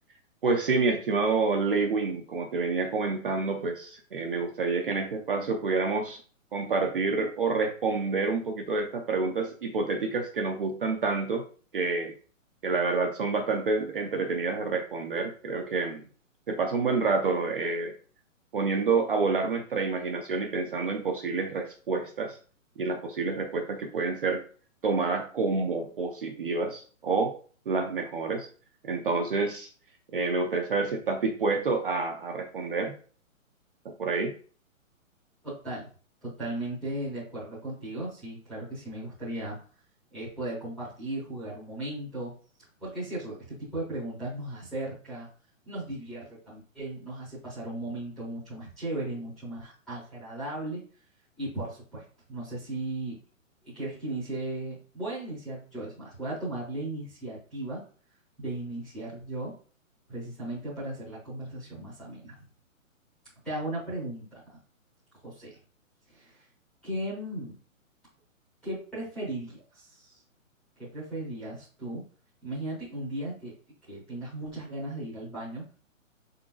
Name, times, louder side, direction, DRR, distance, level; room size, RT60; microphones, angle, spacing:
voice 1, 0.4-6.2 6.5-11.4 11.7-12.1 12.6-16.0 16.5-17.9 18.5-22.4 22.8-24.4 24.8-27.4 27.7-28.5 28.8-29.7 30.1-32.9 33.8-34.3, right 4 dB, 45° right, 2 dB, 0.5 m, -28 dB
voice 2, 35.4-35.9 36.2-39.6 40.1-42.3 42.8-45.3 45.6-50.8 51.4-53.2 53.6-57.8 58.4-59.5 60.1-62.4 63.4-64.4 65.2-65.6 66.1-66.5 66.8-67.5 68.6-70.2 70.8-72.0 72.4-73.5 73.9-75.6, right 1 dB, ahead, -11 dB, 0.7 m, -36 dB
5.0 x 3.8 x 2.4 m, 0.40 s
hypercardioid pair, 165°, 40 cm